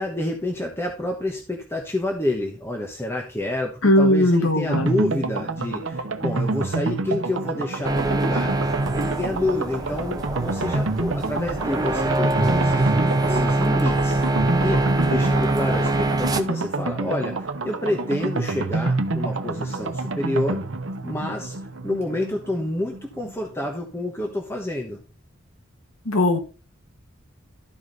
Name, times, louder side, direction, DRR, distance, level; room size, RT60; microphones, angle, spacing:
voice 1, 0.0-8.5 8.9-14.2 14.6-14.8 15.1-20.6 21.0-25.0, left 1 dB, 10° left, 1 dB, 1.1 m, -28 dB
voice 2, 3.8-4.9 26.0-26.4, left 1 dB, 75° left, 6 dB, 1.5 m, -18 dB
sound 1, 4.7-23.3 23.6-23.7 24.0-24.1, right 3 dB, 65° right, 0.9 m, -28 dB
sound 2, 7.8-16.4, right 2 dB, 20° right, 0.6 m, -23 dB
12.5 x 4.8 x 3.9 m, 0.37 s
head